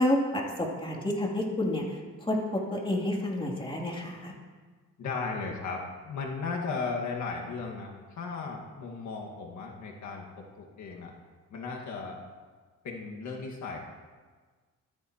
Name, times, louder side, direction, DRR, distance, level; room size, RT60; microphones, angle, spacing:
voice 1, 0.0-4.3, left 1 dB, 15° left, -2 dB, 2.6 m, -29 dB
voice 2, 5.0-10.3 10.6-11.1 11.5-12.2 12.8-13.8, left 4 dB, 70° left, 0 dB, 1.7 m, -36 dB
14.5 x 13.0 x 2.9 m, 1.4 s
cardioid pair, 90°, 30 cm